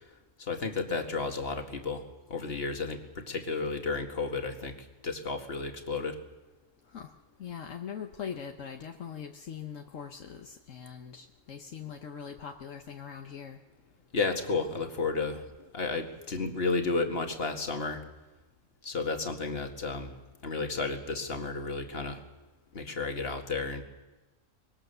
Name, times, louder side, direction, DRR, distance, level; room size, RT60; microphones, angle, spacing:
voice 1, 0.4-2.0 2.3-4.7 5.0-6.2 14.1-18.0 18.8-20.1 20.4-22.2 22.7-23.8, left 4 dB, 50° left, 5 dB, 2.1 m, -32 dB
voice 2, 7.4-13.6, left 7 dB, 75° left, 4 dB, 1.4 m, -41 dB
24.5 x 21.5 x 6.8 m, 1.2 s
omnidirectional pair, 1.3 m